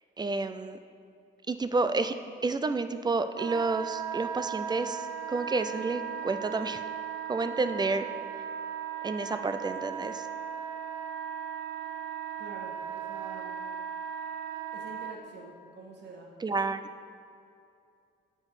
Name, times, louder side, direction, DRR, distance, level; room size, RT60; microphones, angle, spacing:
voice 1, 0.2-0.8 1.5-2.1 2.4-6.8 7.3-8.1 9.0-10.3 16.4-16.8, right 3 dB, 20° right, 10 dB, 0.4 m, -30 dB
Wind instrument woodwind instrument, 3.4-15.2, right 9 dB, 80° right, 0.6 m, -37 dB
voice 2, 12.4-13.7 14.7-16.3, right 3 dB, 60° right, 0 dB, 1.5 m, -47 dB
8.5 x 4.6 x 4.7 m, 2.5 s
cardioid pair, 90°, 20 cm